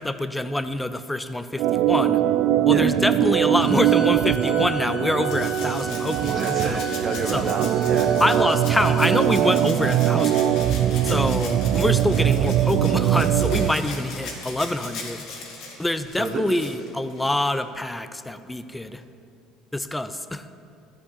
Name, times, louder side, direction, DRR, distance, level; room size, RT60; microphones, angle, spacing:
voice 1, 0.0-2.2 2.7-6.9 7.3-7.5 8.2-10.5 11.0-15.2 15.8-19.0 19.7-20.4, left 1 dB, 5° left, 11 dB, 0.5 m, -25 dB
Organ, 1.6-13.7, right 11 dB, 65° right, 0.4 m, -21 dB
Bowed string instrument, 3.6-9.3, left 2 dB, 30° left, 1.7 m, -38 dB
Rattle (instrument), 5.3-17.6 19.0-19.1, left 3 dB, 70° left, 2.2 m, -39 dB
voice 2, 6.3-8.6 16.2-16.4, right 3 dB, 30° right, 3 dB, 0.9 m, -29 dB
13.5 x 4.9 x 8.6 m, 2.5 s
cardioid pair, 115°, 0 cm